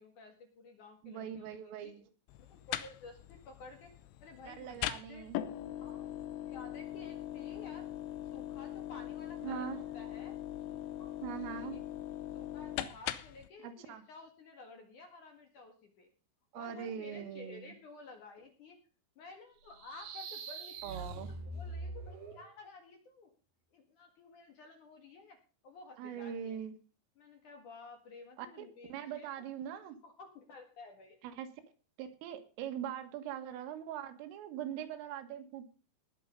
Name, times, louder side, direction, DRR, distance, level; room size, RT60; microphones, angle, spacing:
voice 1, 0.0-1.5 1.8-1.9 2.4-3.9 4.2-5.3 5.8-6.1 6.4-7.9 8.2-10.4 10.7-11.8 12.3-16.1 16.5-18.8 19.2-21.2 21.5-23.3 23.7-26.6 27.2-29.3 30.0-31.2, left 3 dB, 55° left, 4 dB, 2.6 m, -53 dB
voice 2, 1.0-2.0 4.5-5.4 9.4-9.8 11.2-11.8 13.6-14.0 16.5-17.7 20.8-21.3 26.0-26.7 28.4-30.0 31.2-31.5 32.0-35.7, right 9 dB, 85° right, 8 dB, 4.2 m, -42 dB
sound 1, 2.3-13.5, left 13 dB, 85° left, 3.3 m, -41 dB
sound 2, 19.7-22.5, right 3 dB, 60° right, 3.0 m, -43 dB
20.0 x 7.1 x 5.4 m, 0.36 s
omnidirectional pair, 5.8 m